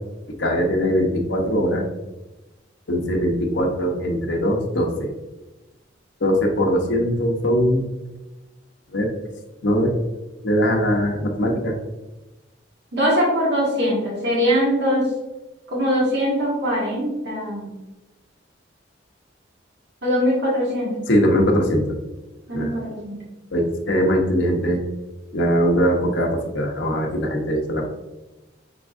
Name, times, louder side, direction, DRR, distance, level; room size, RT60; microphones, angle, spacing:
voice 1, 0.4-1.8 2.9-5.1 6.2-7.8 8.9-9.1 9.6-9.9 10.4-11.7 21.1-22.0 22.5-22.7 23.5-24.8 25.3-27.9, equal, 65° left, 0 dB, 0.9 m, -21 dB
voice 2, 12.9-15.0 15.7-17.7 20.0-20.9 22.5-23.1, equal, 60° right, -5 dB, 1.5 m, -22 dB
6.0 x 3.5 x 2.5 m, 1.0 s
head